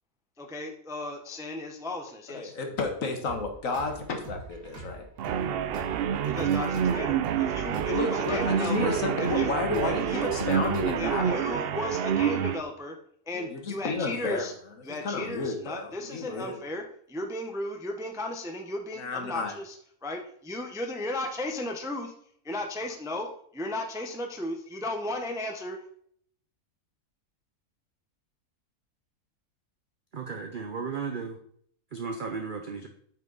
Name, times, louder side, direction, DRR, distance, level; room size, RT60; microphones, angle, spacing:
voice 1, 0.4-2.5 6.2-8.9 9.3-9.5 9.8-10.3 11.0-12.9 13.3-14.5 14.8-16.8 17.1-19.8 20.0-22.1 22.4-23.3 23.5-25.8, left 1 dB, 5° right, 3 dB, 0.6 m, -35 dB
voice 2, 2.4-5.1 7.7-11.5 13.3-14.5 14.9-16.6 19.0-19.5, left 3 dB, 60° left, 4 dB, 1.7 m, -31 dB
sound 1, 3.2-11.2, right 2 dB, 65° right, 2.3 m, -44 dB
sound 2, 5.2-12.6, right 8 dB, 90° right, 0.5 m, -28 dB
voice 3, 30.1-31.4 31.9-32.9, right 5 dB, 45° right, 4 dB, 0.7 m, -34 dB
8.8 x 5.7 x 4.0 m, 0.63 s
omnidirectional pair, 1.6 m